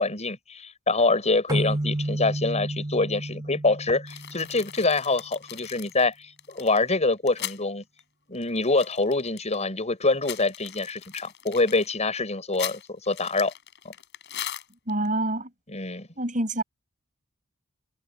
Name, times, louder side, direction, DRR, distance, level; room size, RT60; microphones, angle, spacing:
voice 1, 0.0-7.8 8.3-13.5 15.7-16.1, left 3 dB, 35° left, 6.0 m, -25 dB
sound 1, 1.5-5.0, right 1 dB, 20° right, 2.4 m, -31 dB
sound 2, 4.1-7.6 8.0-8.1 8.3-9.6 10.0-15.1, left 11 dB, 60° left, 6.9 m, -39 dB
voice 2, 14.9-15.5 16.2-16.6, right 1 dB, 40° right, 6.0 m, -26 dB
head